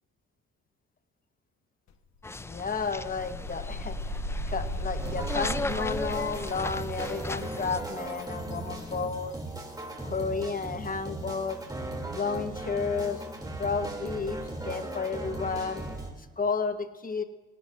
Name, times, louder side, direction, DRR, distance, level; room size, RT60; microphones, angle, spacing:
sound 1, 1.9-2.0 2.3-9.1, equal, 65° left, 1.0 m, -38 dB
sound 2, 2.2-7.8, left 3 dB, 10° left, 0.3 m, -37 dB
voice 1, 2.4-4.0 4.5-9.4 10.0-11.6 12.1-13.2 13.6-15.8 16.4-17.2, left 5 dB, 30° left, 9 dB, 1.0 m, -32 dB
sound 3, 5.0-16.1, right 2 dB, 15° right, 2.5 m, -38 dB
18.0 x 16.5 x 2.5 m, 1.2 s
cardioid pair, 90°, 30 cm